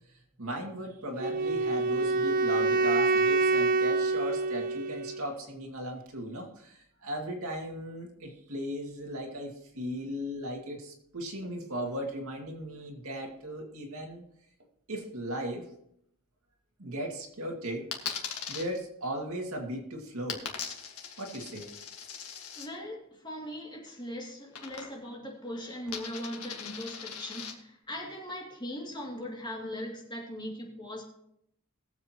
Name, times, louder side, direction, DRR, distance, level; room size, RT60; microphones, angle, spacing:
voice 1, 0.1-14.2 14.9-15.7 16.8-17.9 18.5-20.5 21.2-21.7, equal, 75° right, 1 dB, 2.3 m, -37 dB
Wind instrument woodwind instrument, 1.2-5.3, right 3 dB, 40° right, 0.3 m, -26 dB
Coin (dropping), 17.9-18.6 20.3-22.7 24.5-25.2 25.4-27.5, left 7 dB, 90° left, 1.8 m, -40 dB
voice 2, 22.6-31.0, left 1 dB, 20° left, -1 dB, 2.5 m, -39 dB
21.0 x 7.6 x 3.0 m, 0.75 s
head